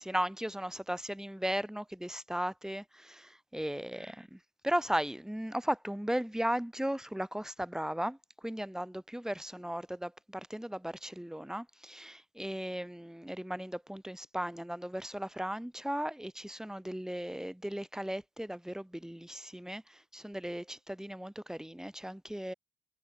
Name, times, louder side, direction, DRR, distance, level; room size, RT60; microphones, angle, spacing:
voice 1, 0.0-22.5, equal, 5° right, 2.1 m, -36 dB
cardioid pair, 90°, 20 cm